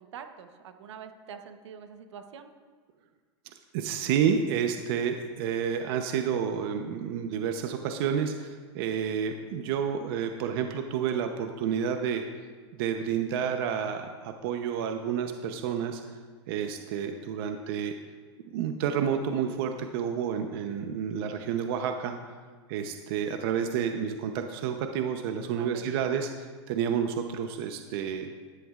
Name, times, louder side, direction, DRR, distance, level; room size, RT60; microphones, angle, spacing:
voice 1, 0.0-2.5 25.5-26.1, right 7 dB, 80° right, 7 dB, 1.0 m, -45 dB
voice 2, 3.7-12.2 12.7-16.2 16.5-17.9 18.5-22.1 22.7-28.3, right 7 dB, 55° right, 6 dB, 0.8 m, -30 dB
13.5 x 11.0 x 2.5 m, 1.5 s
supercardioid pair, 135°, 15 cm